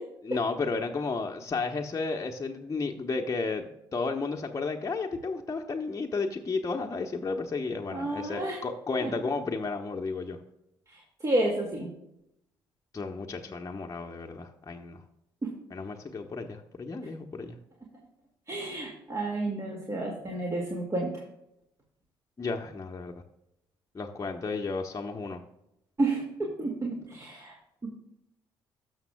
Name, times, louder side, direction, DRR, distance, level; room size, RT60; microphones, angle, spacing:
voice 1, 0.2-10.4 12.9-15.0 15.7-17.6 22.4-23.1 23.9-25.4, left 4 dB, 30° left, 2 dB, 0.9 m, -33 dB
voice 2, 7.9-8.6 9.0-9.1 11.2-11.9 18.5-21.1 26.0-27.5, right 2 dB, 30° right, -1 dB, 2.0 m, -30 dB
13.0 x 6.5 x 2.2 m, 0.83 s
hypercardioid pair, 50°, 11 cm